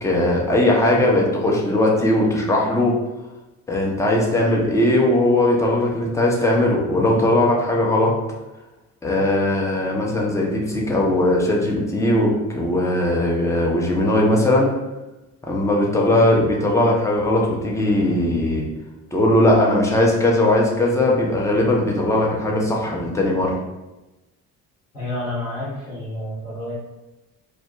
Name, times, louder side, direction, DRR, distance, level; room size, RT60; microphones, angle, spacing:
voice 1, 0.0-2.9 3.7-8.1 9.0-14.7 15.5-18.7 19.1-23.5, left 1 dB, 5° left, -2 dB, 0.5 m, -19 dB
voice 2, 24.9-26.7, left 1 dB, 90° left, -10 dB, 1.2 m, -29 dB
2.4 x 2.0 x 2.9 m, 1.0 s
figure-of-eight pair, 50°, 46 cm